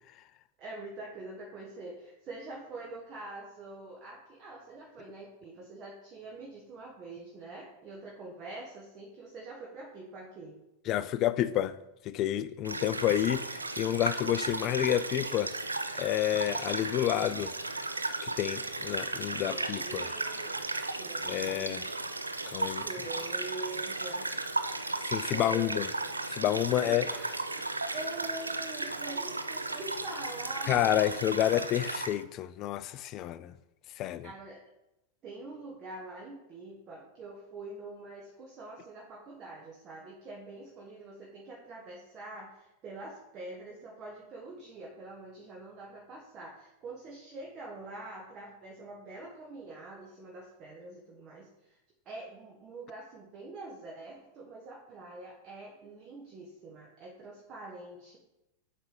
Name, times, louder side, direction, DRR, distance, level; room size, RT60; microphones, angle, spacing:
voice 1, 0.6-10.6 19.4-20.6 21.0-21.9 22.8-24.3 25.3-25.8 26.8-27.4 27.9-31.0 34.2-34.6 35.2-51.8 52.0-58.2, right 2 dB, 35° right, 1.3 m, -45 dB
voice 2, 10.9-11.8 12.0-15.5 15.9-17.5 18.2-20.0 21.2-21.9 22.5-22.9 25.0-25.9 26.3-27.0 30.7-33.5 34.0-34.3, left 12 dB, 40° left, 0.3 m, -29 dB
sound 1, 12.6-32.2, right 2 dB, 85° right, 0.4 m, -35 dB
7.8 x 3.3 x 4.9 m
figure-of-eight pair, 90°, 0 cm